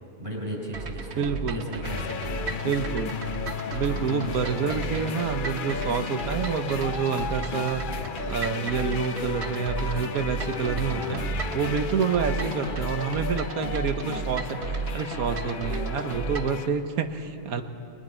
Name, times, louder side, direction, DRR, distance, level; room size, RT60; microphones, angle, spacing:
voice 1, 0.2-2.6 3.9-4.2 10.8-11.7, equal, 35° right, -3 dB, 5.1 m, -37 dB
sound 1, 0.7-16.6, right 4 dB, 50° right, 1.2 m, -34 dB
voice 2, 1.2-1.6 2.6-3.1 3.7-11.2 11.5-17.6, right 6 dB, 90° right, 7 dB, 1.5 m, -28 dB
sound 2, 1.8-16.7, left 7 dB, 55° left, 0.6 m, -34 dB
30.0 x 22.5 x 4.4 m, 2.8 s
omnidirectional pair, 1.5 m